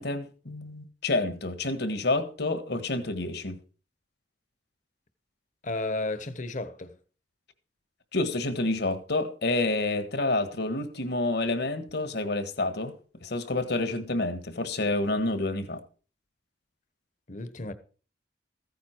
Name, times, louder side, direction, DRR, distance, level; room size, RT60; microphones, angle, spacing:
voice 1, 0.0-3.6 8.1-12.9 13.2-15.8, left 2 dB, 65° left, 1.5 m, -28 dB
voice 2, 5.6-6.9 17.3-17.7, left 2 dB, 45° left, 1.1 m, -33 dB
14.5 x 9.4 x 4.6 m
head